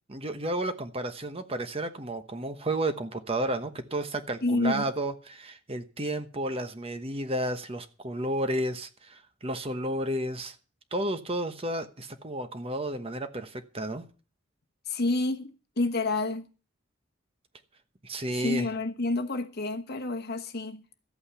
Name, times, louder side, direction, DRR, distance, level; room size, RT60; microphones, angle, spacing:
voice 1, 0.1-10.6 10.9-14.0 18.0-18.7, right 1 dB, 25° right, 1.0 m, -32 dB
voice 2, 4.4-4.9 14.9-16.5 18.3-20.8, left 2 dB, 50° left, 1.3 m, -29 dB
13.5 x 8.7 x 6.9 m
head